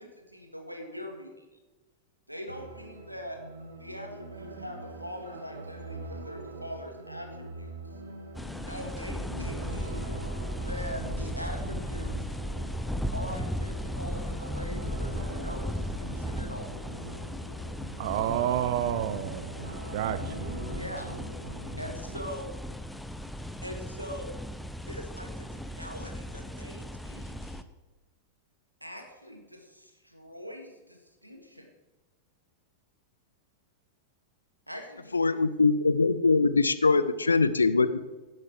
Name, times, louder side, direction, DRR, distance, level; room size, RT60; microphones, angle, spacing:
voice 1, 0.0-1.5 2.3-3.4 3.8-7.7 8.6-10.1 10.6-12.4 13.1-16.8 20.7-21.2 21.8-22.5 23.6-24.4 24.8-27.6 28.8-31.7 34.7-35.4, equal, 90° right, 3 dB, 2.3 m, -42 dB
sound 1, 2.5-22.2, right 1 dB, 70° right, 2.1 m, -43 dB
sound 2, 8.3-27.6, equal, 5° left, 0.7 m, -36 dB
voice 2, 18.0-19.6 19.9-20.6, right 12 dB, 55° right, 13 dB, 0.6 m, -29 dB
voice 3, 35.1-38.0, left 3 dB, 80° left, 13 dB, 0.7 m, -23 dB
17.5 x 7.7 x 4.7 m, 1.2 s
figure-of-eight pair, 90°, 0 cm